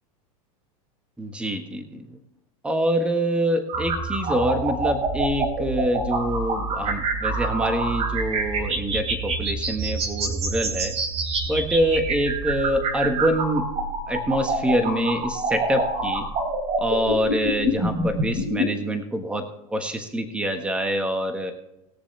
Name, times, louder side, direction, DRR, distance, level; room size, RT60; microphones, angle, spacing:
voice 1, 1.2-2.2 2.6-11.0 11.5-13.7 14.1-16.3 16.8-21.5, equal, 5° right, 6 dB, 1.4 m, -25 dB
sound 1, 3.7-18.7, right 2 dB, 35° right, 3.1 m, -26 dB
20.5 x 7.0 x 3.3 m, 0.88 s
supercardioid pair, 125°, 19 cm